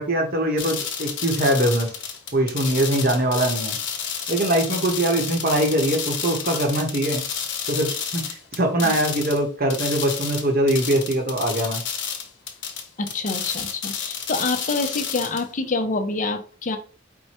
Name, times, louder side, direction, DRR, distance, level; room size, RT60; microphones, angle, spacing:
voice 1, 0.0-1.9 2.3-3.8 4.3-7.2 7.7-11.8, right 1 dB, 50° right, 3 dB, 1.0 m, -22 dB
sound 1, 0.6-9.4 9.7-15.4, left 7 dB, 65° left, 0.9 m, -30 dB
voice 2, 13.0-16.8, left 3 dB, 40° left, 5 dB, 0.6 m, -26 dB
4.5 x 2.2 x 4.3 m, 0.39 s
head